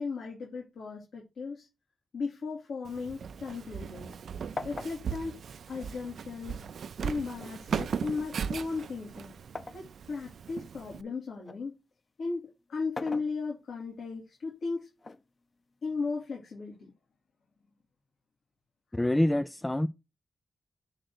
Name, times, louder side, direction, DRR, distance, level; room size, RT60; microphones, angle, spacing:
voice 1, 0.0-1.7 2.1-4.1 4.6-5.3 5.7-6.6 7.0-9.3 9.7-11.7 12.2-14.9 15.8-16.9, left 4 dB, 85° left, 2.9 m, -36 dB
Walk footsteps, 2.8-11.0, right 7 dB, 80° right, 0.5 m, -38 dB
sound 1, 2.9-4.2 4.6-6.5 7.4-9.9 10.4-11.7 12.7-13.9 15.0-16.0, left 3 dB, 35° left, 0.8 m, -44 dB
voice 2, 18.9-19.9, left 1 dB, 10° left, 0.3 m, -26 dB
7.7 x 3.9 x 6.2 m
wide cardioid pair, 140°, 0 cm